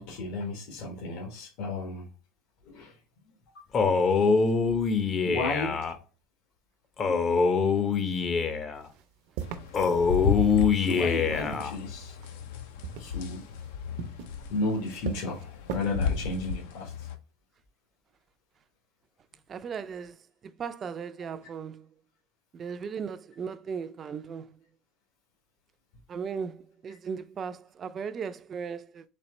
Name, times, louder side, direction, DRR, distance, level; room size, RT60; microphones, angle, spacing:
voice 1, 0.0-2.1 2.6-2.9 5.2-5.8 10.8-12.2 13.0-13.4 14.5-17.1, left 2 dB, 70° left, 1.2 m, -33 dB
Male speech man speaking, 3.7-5.9 7.0-8.8 9.7-11.7, left 5 dB, 30° left, 0.5 m, -24 dB
sound 1, 8.8-10.6 11.2-12.5 12.8-15.8, right 8 dB, 70° right, 0.6 m, -40 dB
sound 2, 9.4-17.2, left 6 dB, 90° left, 0.6 m, -34 dB
voice 2, 19.5-20.2 20.4-21.9 22.5-24.5 26.1-29.0, right 6 dB, 30° right, 0.3 m, -37 dB
4.2 x 2.9 x 3.1 m
cardioid pair, 140°, 0 cm